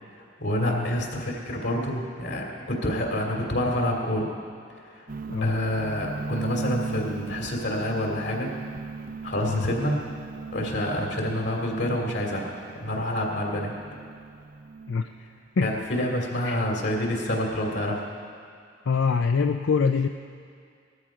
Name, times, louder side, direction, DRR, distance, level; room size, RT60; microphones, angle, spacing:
voice 1, 0.4-4.3 5.4-8.5 9.2-10.0 10.5-12.5 12.8-13.7 15.6-18.0, left 1 dB, 65° left, 0 dB, 2.7 m, -27 dB
sound 1, 5.1-15.3, right 4 dB, 50° right, 0.5 m, -38 dB
voice 2, 18.9-20.1, left 5 dB, 90° left, 6 dB, 0.5 m, -24 dB
19.5 x 13.5 x 5.0 m, 2.2 s
head